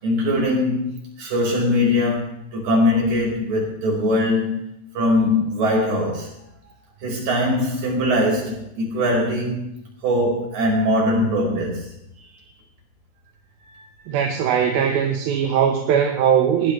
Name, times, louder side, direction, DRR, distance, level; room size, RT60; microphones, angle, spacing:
voice 1, 0.0-4.6 4.9-6.3 7.0-9.6 10.0-12.0 13.8-13.9, left 1 dB, 65° right, -2 dB, 6.9 m, -21 dB
voice 2, 14.1-16.7, right 8 dB, 85° right, 3 dB, 3.2 m, -20 dB
20.5 x 15.0 x 3.4 m, 0.76 s
omnidirectional pair, 4.2 m